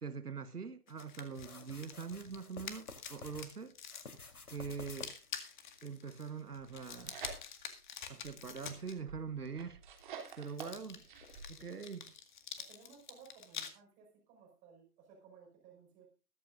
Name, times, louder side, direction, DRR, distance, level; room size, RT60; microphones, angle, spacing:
voice 1, 0.0-3.7 4.5-5.1 5.8-7.2 8.1-9.8 10.4-11.0 11.5-12.1, right 5 dB, 85° right, 1.5 m, -43 dB
sound 1, 0.9-8.9 10.0-13.7, left 7 dB, 30° left, 2.0 m, -48 dB
sound 2, 1.4-3.5 3.9-5.3, left 3 dB, 70° left, 3.6 m, -51 dB
sound 3, 6.6-7.8 8.2-11.5, right 6 dB, 30° right, 3.1 m, -49 dB
voice 2, 12.6-16.1, right 6 dB, 15° right, 5.5 m, -59 dB
21.5 x 9.2 x 2.6 m
figure-of-eight pair, 150°, 46 cm